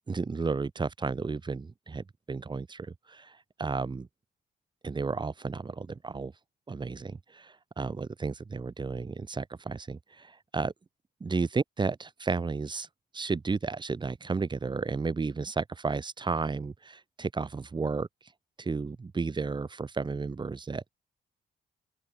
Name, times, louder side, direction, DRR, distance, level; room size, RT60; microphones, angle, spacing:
voice 1, 0.1-4.1 4.8-6.3 6.7-10.7 11.2-12.9 13.1-18.1 18.6-20.9, right 4 dB, 25° right, 1.3 m, -33 dB
open air
cardioid pair, 110°, 19 cm